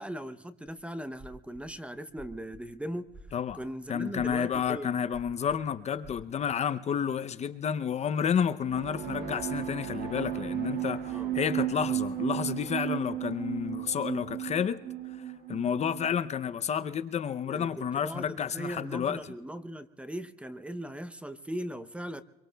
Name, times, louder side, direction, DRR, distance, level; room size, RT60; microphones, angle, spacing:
voice 1, 0.0-3.1 3.5-5.0 11.1-11.4 17.4-22.2, equal, 5° right, 12 dB, 0.6 m, -39 dB
sound 1, 0.7-0.8 1.1-1.7 2.1-3.6 4.1-4.7 5.0-5.6 6.0-6.4, right 2 dB, 30° right, 3.9 m, -51 dB
voice 2, 3.9-14.8 15.5-19.3, left 8 dB, 40° left, 12 dB, 0.6 m, -30 dB
sound 2, 8.7-16.2, right 11 dB, 70° right, 1.9 m, -34 dB
25.5 x 23.5 x 2.2 m, 1.1 s
cardioid pair, 110°, 17 cm